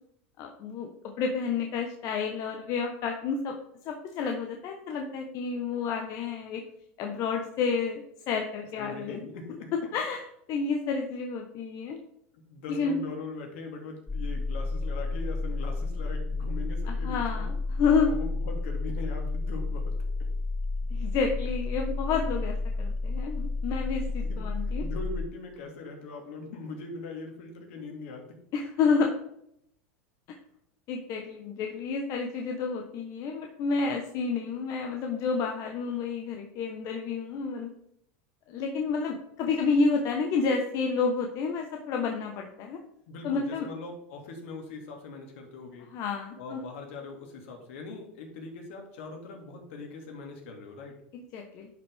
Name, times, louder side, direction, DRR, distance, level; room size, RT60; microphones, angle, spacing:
voice 1, 0.4-0.9 1.2-3.5 3.8-6.6 7.0-9.3 9.7-12.0 12.7-13.0 16.9-18.1 20.9-24.8 28.5-29.1 30.9-37.7 38.5-42.8 43.2-43.7 45.9-46.6 51.1-51.7, left 5 dB, 50° left, 3 dB, 1.1 m, -30 dB
voice 2, 8.8-9.7 12.3-17.4 18.0-19.9 24.2-24.4 24.7-28.2 43.1-45.9 46.4-51.0, left 3 dB, 70° left, 2 dB, 2.4 m, -41 dB
sound 1, 14.1-25.3, left 3 dB, 10° left, 0.5 m, -31 dB
10.5 x 5.4 x 3.5 m, 0.73 s
hypercardioid pair, 100°, 7 cm